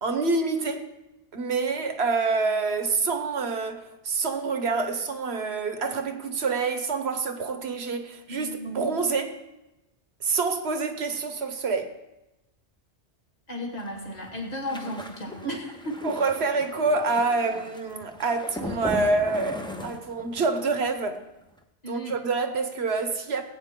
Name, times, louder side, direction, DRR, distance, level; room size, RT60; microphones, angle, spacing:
voice 1, 0.0-0.9 1.3-9.4 10.2-11.9 15.4-15.6 16.0-21.2 21.9-23.4, right 4 dB, 65° right, 1.3 m, -27 dB
voice 2, 8.3-8.9 13.5-15.9 21.8-22.2, left 1 dB, 35° left, 2.2 m, -35 dB
sound 1, 13.8-20.6 20.9-21.2 21.4-21.6, left 1 dB, 5° left, 0.7 m, -38 dB
17.5 x 8.8 x 3.8 m
omnidirectional pair, 1.2 m